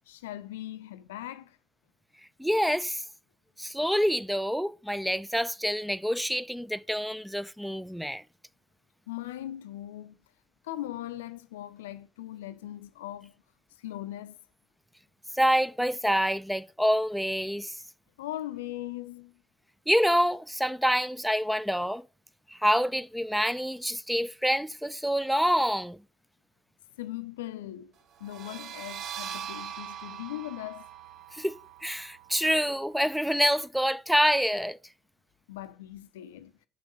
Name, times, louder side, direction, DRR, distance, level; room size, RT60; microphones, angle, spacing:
voice 1, 0.1-1.6 9.1-10.2 10.6-13.4 13.8-14.4 18.2-19.3 27.0-27.9 28.2-30.9 35.5-36.5, left 14 dB, 80° left, 0.4 m, -39 dB
voice 2, 2.4-3.0 3.6-8.2 15.3-17.8 19.9-22.0 22.5-26.0 31.3-31.6 31.8-34.8, equal, ahead, 0.3 m, -27 dB
sound 1, 28.2-33.6, right 9 dB, 55° right, 0.5 m, -42 dB
6.2 x 5.7 x 5.3 m
figure-of-eight pair, 50°, 0 cm